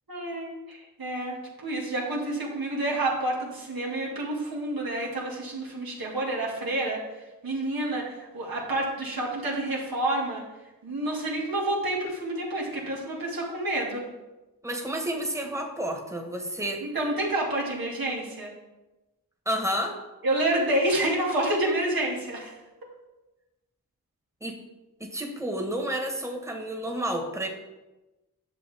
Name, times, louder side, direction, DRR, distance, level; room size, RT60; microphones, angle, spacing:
voice 1, 0.1-7.0 7.4-10.4 10.8-14.0 16.8-18.5 20.2-22.5, right 1 dB, 90° right, -3 dB, 2.2 m, -29 dB
voice 2, 14.6-16.8 19.4-20.0 24.4-24.6 25.0-27.5, right 1 dB, 10° right, 3 dB, 1.3 m, -30 dB
10.5 x 6.5 x 3.5 m, 1.1 s
wide cardioid pair, 60°, 34 cm